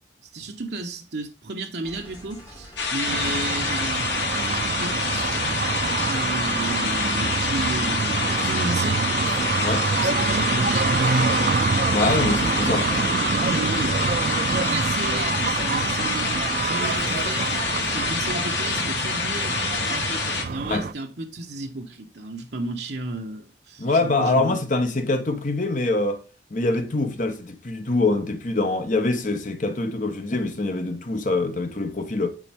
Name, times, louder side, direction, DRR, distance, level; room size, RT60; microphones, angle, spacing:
voice 1, 0.2-4.1 4.8-5.5 6.0-9.1 10.0-11.2 12.7-14.0 14.5-17.5 17.9-19.7 20.5-24.6, right 2 dB, 65° right, 0.9 m, -33 dB
sound 1, 1.8-18.4, left 1 dB, 25° left, 3.0 m, -46 dB
sound 2, 2.8-20.4, left 5 dB, 75° left, 1.9 m, -27 dB
sound 3, 3.1-20.9, right 4 dB, 45° right, 0.4 m, -26 dB
voice 2, 11.9-12.9 20.6-20.9 23.8-26.2 26.5-32.3, left 2 dB, 45° left, 0.9 m, -24 dB
9.6 x 4.2 x 3.4 m
head